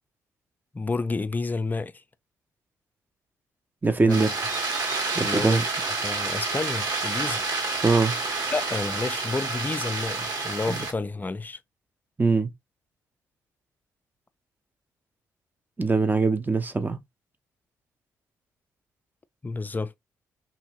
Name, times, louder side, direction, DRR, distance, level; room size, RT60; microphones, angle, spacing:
voice 1, 0.7-2.0 4.0-4.3 5.1-5.7 6.0-7.5 8.5-11.6 19.4-19.9, left 3 dB, 20° left, 0.4 m, -30 dB
voice 2, 3.8-4.3 5.2-5.6 7.8-8.1 10.7-10.8 12.2-12.5 15.8-17.0, right 4 dB, 25° right, 0.8 m, -22 dB
sound 1, 4.1-10.9, right 3 dB, 50° right, 1.5 m, -29 dB
2.8 x 2.7 x 2.9 m
hypercardioid pair, 50°, 8 cm